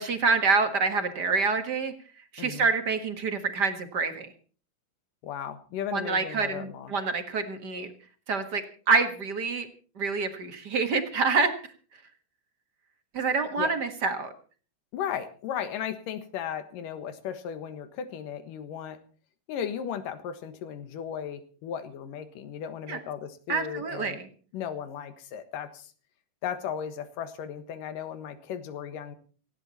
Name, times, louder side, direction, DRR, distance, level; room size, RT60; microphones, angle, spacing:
voice 1, 0.0-1.9 2.3-4.3 5.9-7.9 8.3-9.7 10.0-11.5 13.1-14.3 22.9-23.0 23.5-24.3, right 4 dB, 40° right, 7 dB, 1.8 m, -27 dB
voice 2, 5.2-6.9 13.6-13.7 14.9-19.0 19.5-24.2 24.5-25.9 26.4-29.2, left 8 dB, 90° left, 11 dB, 3.1 m, -36 dB
18.0 x 15.5 x 4.2 m, 0.40 s
omnidirectional pair, 3.7 m